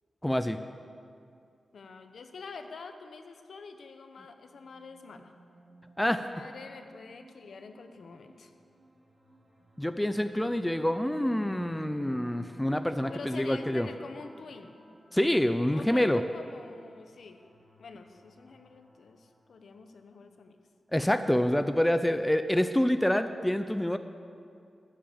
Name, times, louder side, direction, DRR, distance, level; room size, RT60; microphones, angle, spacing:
voice 1, 0.2-0.6 6.0-6.3 9.8-13.9 15.1-16.2 20.9-24.0, left 1 dB, 5° left, 9 dB, 0.4 m, -27 dB
voice 2, 1.7-5.3 6.2-8.5 13.1-14.8 15.7-17.4 17.8-20.6, left 4 dB, 70° left, 7 dB, 0.9 m, -46 dB
sound 1, 4.4-19.8, right 2 dB, 15° right, 3.2 m, -54 dB
14.0 x 7.6 x 7.1 m, 2.4 s
wide cardioid pair, 155°, 0 cm